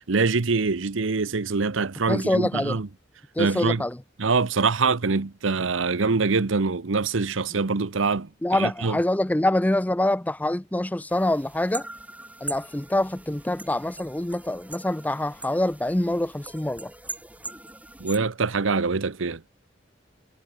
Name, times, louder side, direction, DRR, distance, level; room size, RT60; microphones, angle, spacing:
voice 1, 0.1-2.9 3.4-3.8 4.2-9.0 18.0-19.4, right 4 dB, 90° right, 0.9 m, -24 dB
voice 2, 2.1-2.8 3.4-4.0 7.5-7.6 8.4-11.9 12.4-16.9, left 1 dB, 10° left, 0.5 m, -25 dB
sound 1, 11.1-18.2, right 2 dB, 10° right, 5.3 m, -41 dB
head